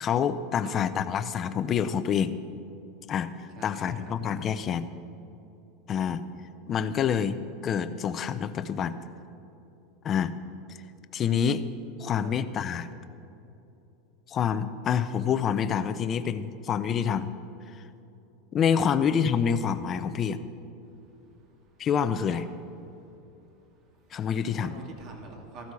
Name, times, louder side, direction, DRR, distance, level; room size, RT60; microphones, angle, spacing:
voice 1, 0.0-2.3 3.1-3.3 3.6-4.9 5.9-6.2 6.7-9.0 10.0-10.3 11.1-11.6 12.0-12.9 14.3-17.3 18.5-20.4 21.8-22.5 24.1-24.7, left 7 dB, 25° left, 12 dB, 0.5 m, -27 dB
voice 2, 3.5-4.0 12.0-12.5 18.9-19.0 21.7-21.8 22.3-22.4 24.1-24.2 24.6-25.7, right 2 dB, 40° right, 2 dB, 2.2 m, -45 dB
15.0 x 12.5 x 4.8 m, 2.9 s
supercardioid pair, 155°, 0 cm